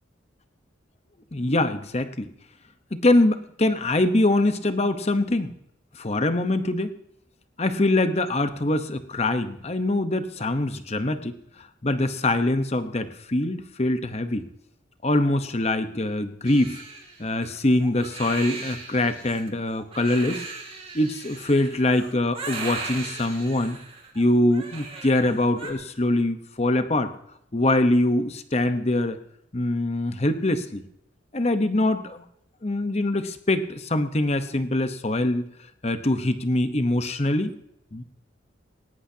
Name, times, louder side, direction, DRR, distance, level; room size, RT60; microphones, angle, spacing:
voice 1, 1.3-2.3 2.9-5.5 5.9-7.0 7.6-11.3 11.8-14.5 15.0-16.8 17.2-20.4 20.9-23.8 24.1-27.1 27.5-29.2 29.5-30.8 31.3-32.2 32.6-35.4 35.8-37.5 37.9-38.0, left 1 dB, 35° left, 10 dB, 0.9 m, -23 dB
Crying sobbing, 16.4-25.7, right 4 dB, 30° right, 2.4 m, -38 dB
19.0 x 17.5 x 2.8 m, 0.76 s
head